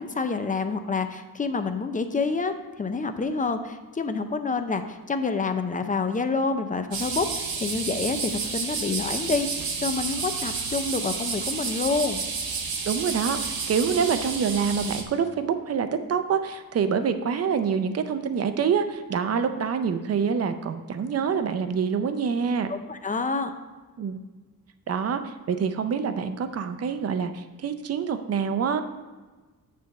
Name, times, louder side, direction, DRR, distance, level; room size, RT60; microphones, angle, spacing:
voice 1, 0.0-12.2 22.7-23.5, left 4 dB, 25° left, 8 dB, 0.4 m, -28 dB
sound 1, 6.9-15.0, right 5 dB, 80° right, 1.1 m, -30 dB
voice 2, 12.8-22.7 24.0-24.2 24.9-28.8, right 6 dB, 45° right, 9 dB, 0.5 m, -26 dB
9.3 x 3.4 x 6.4 m, 1.3 s
wide cardioid pair, 165°, 36 cm